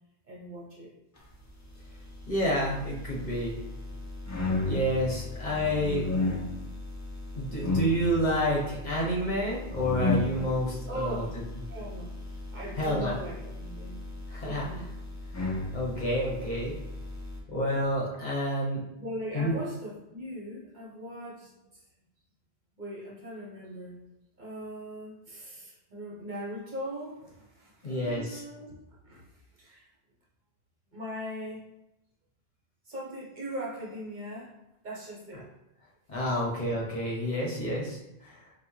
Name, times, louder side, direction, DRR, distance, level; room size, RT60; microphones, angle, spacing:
voice 1, 0.2-0.9 10.9-11.4 11.7-13.9 14.4-14.9 19.0-21.8 22.8-24.0 24.4-28.8 29.0-29.9 30.9-31.6 32.8-34.5 34.8-35.5, right 1 dB, 45° right, -4 dB, 1.0 m, -40 dB
sound 1, 2.0-17.4, left 2 dB, 25° left, 0.4 m, -34 dB
voice 2, 2.3-3.6 4.6-6.1 7.3-11.2 12.8-13.1 14.3-14.6 15.7-16.7 17.5-18.8 19.3-19.5 27.8-28.4 36.1-38.4, equal, 45° left, -4 dB, 0.9 m, -29 dB
5.9 x 2.3 x 3.1 m, 0.90 s
omnidirectional pair, 1.1 m